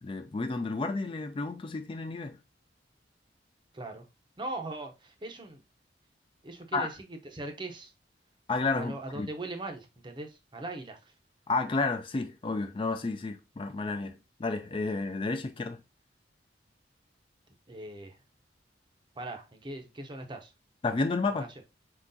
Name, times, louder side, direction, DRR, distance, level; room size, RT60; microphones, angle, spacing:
voice 1, 0.0-2.4 6.7-6.9 8.5-9.3 11.5-15.8 20.8-21.5, left 3 dB, 30° left, 0.3 m, -31 dB
voice 2, 3.7-4.1 4.4-5.6 6.4-7.9 8.8-11.1 17.7-18.2 19.2-20.5 21.3-21.5, right 2 dB, 25° right, 0.6 m, -40 dB
4.6 x 3.8 x 2.6 m
head